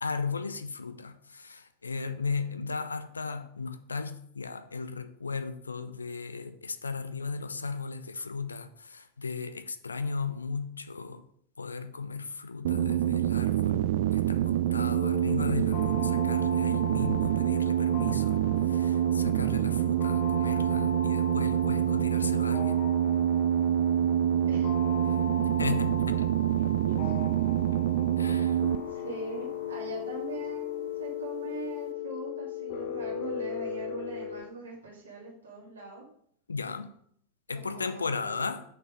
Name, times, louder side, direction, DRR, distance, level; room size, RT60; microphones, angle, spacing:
voice 1, 0.0-11.2 11.6-13.8 14.1-22.9 25.1-25.2 25.6-26.2 28.2-28.6 36.5-37.0 37.5-38.6, left 4 dB, 75° left, 9 dB, 0.6 m, -36 dB
sound 1, 12.6-28.8, right 10 dB, 55° right, 0.3 m, -26 dB
sound 2, 14.9-34.4, left 6 dB, 50° left, 1.0 m, -38 dB
voice 2, 26.6-27.2 28.9-36.1 37.5-38.5, right 4 dB, 75° right, -4 dB, 2.2 m, -42 dB
6.1 x 5.2 x 5.0 m, 0.64 s
figure-of-eight pair, 90°, 0 cm